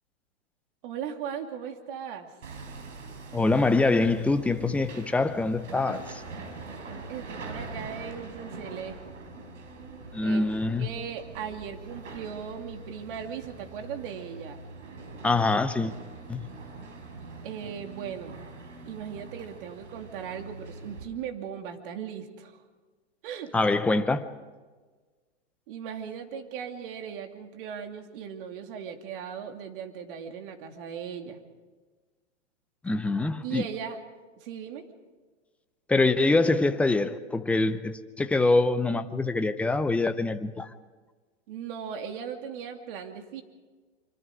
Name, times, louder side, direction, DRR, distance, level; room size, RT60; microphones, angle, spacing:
voice 1, 0.8-2.3 7.1-9.1 10.2-10.5 10.8-14.6 17.4-18.3 18.8-22.6 23.2-23.5 25.7-31.4 33.4-34.0 34.4-34.8 41.5-43.4, right 8 dB, 45° right, 2.8 m, -38 dB
Hammer, 2.4-21.0, right 3 dB, 80° right, 5.3 m, -43 dB
voice 2, 3.3-6.2 10.1-10.9 15.2-15.9 16.3-16.4 23.5-24.3 32.8-33.6 35.9-40.7, left 3 dB, 5° left, 0.6 m, -24 dB
25.5 x 25.5 x 4.9 m
hypercardioid pair, 135°, 36 cm